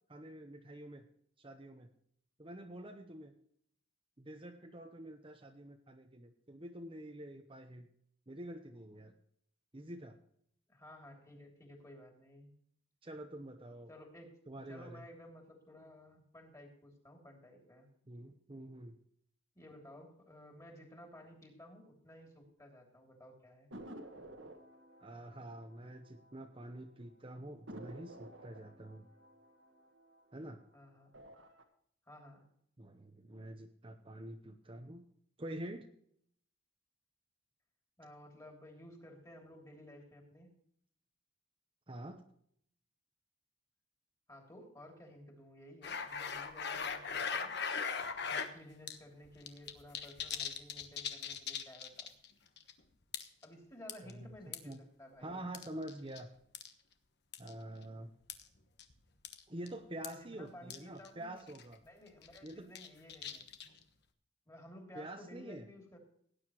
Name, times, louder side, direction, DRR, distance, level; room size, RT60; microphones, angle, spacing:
voice 1, 0.1-1.1 1.4-1.9 2.4-3.3 4.2-7.9 8.3-9.1 9.7-10.2 13.0-13.9 14.5-15.0 18.1-18.9 25.0-29.1 30.3-30.6 32.8-35.0 35.4-35.9 41.9-42.2 54.0-54.3 54.6-54.8 55.2-56.3 57.4-58.1 59.5-61.8 62.4-62.7 64.9-65.6, right 1 dB, 25° right, 4 dB, 0.9 m, -47 dB
voice 2, 10.7-12.5 13.9-14.4 14.7-17.9 19.5-23.7 30.7-31.1 32.1-32.4 38.0-40.5 44.3-47.5 48.3-52.1 53.4-55.5 60.0-61.4 61.8-63.4 64.5-66.0, left 1 dB, 15° left, 2 dB, 2.9 m, -55 dB
sound 1, 23.7-26.8 27.1-27.2 27.7-30.6 31.0-31.6, right 1 dB, 75° right, 1.7 m, -53 dB
sound 2, 45.8-48.5 48.9-49.0 49.2-52.3 52.6-52.7 53.1-53.4 53.9-54.7 55.5-56.2 56.5-56.7 57.3-57.5 58.3-58.4 58.8-58.9 59.2-59.4 59.7-59.8 60.0-60.1 60.7-60.8 61.0-61.1 61.5-61.7 62.2-63.8, left 6 dB, 55° left, 1.2 m, -39 dB
18.0 x 9.6 x 3.1 m, 0.66 s
head